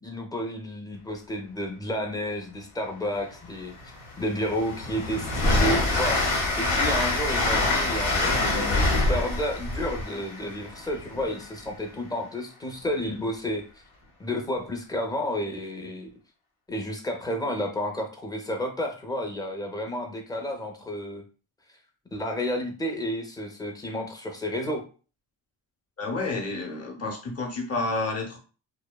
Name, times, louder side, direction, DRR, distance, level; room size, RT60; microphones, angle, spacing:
voice 1, 0.0-3.8 4.2-13.6 14.2-16.1 16.7-21.2 22.1-24.8, equal, 10° left, 3 dB, 0.5 m, -31 dB
Train, 3.3-3.4 3.8-11.5, left 2 dB, 80° left, 1.1 m, -25 dB
voice 2, 26.0-28.4, left 3 dB, 30° left, 0 dB, 0.8 m, -30 dB
2.7 x 2.1 x 2.2 m, 0.37 s
cardioid pair, 70°, 48 cm